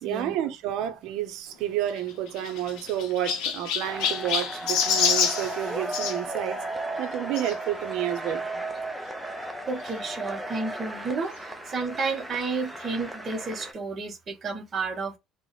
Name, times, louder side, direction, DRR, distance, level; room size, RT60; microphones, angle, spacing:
voice 1, 0.0-6.6 7.0-8.4, right 12 dB, 60° right, 0.6 m, -30 dB
Chirp tweet, 1.9-6.2 7.3-7.5 8.2-8.3 8.5-8.6 9.9-10.0, left 7 dB, 65° left, 0.6 m, -27 dB
sound 1, 3.8-13.7, right 2 dB, 5° right, 0.3 m, -35 dB
voice 2, 9.7-15.2, right 4 dB, 25° right, 0.7 m, -31 dB
3.3 x 2.0 x 3.8 m
cardioid pair, 180°, 0 cm